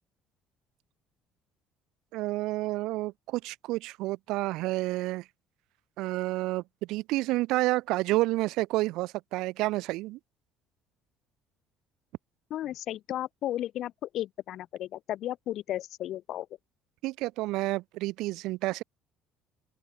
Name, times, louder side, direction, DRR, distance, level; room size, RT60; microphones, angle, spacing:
voice 1, 2.1-5.3 6.0-10.2 17.0-18.8, right 19 dB, 70° right, 0.4 m, -30 dB
voice 2, 12.5-16.5, left 13 dB, 60° left, 0.8 m, -34 dB
open air
hypercardioid pair, 60°, 0 cm